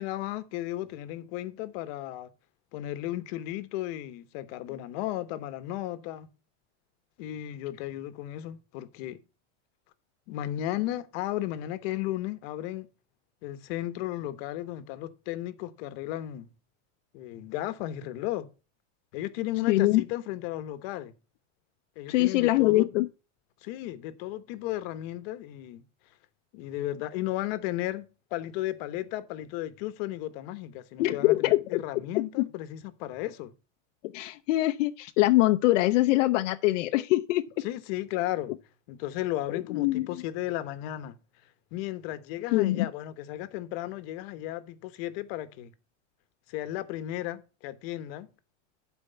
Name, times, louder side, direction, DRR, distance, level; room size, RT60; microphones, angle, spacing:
voice 1, 0.0-2.3 2.7-6.3 7.2-9.2 10.3-12.9 13.4-16.5 17.1-18.5 19.1-21.1 22.0-22.9 23.6-25.8 26.5-28.1 28.3-33.5 37.6-38.5 38.9-41.2 41.7-45.7 46.5-48.3, left 14 dB, 50° left, 1.1 m, -34 dB
voice 2, 19.7-20.0 22.1-23.1 31.0-31.8 34.1-37.4 39.5-40.1 42.5-42.9, left 17 dB, 75° left, 0.7 m, -23 dB
11.5 x 4.5 x 5.6 m
supercardioid pair, 155°, 38 cm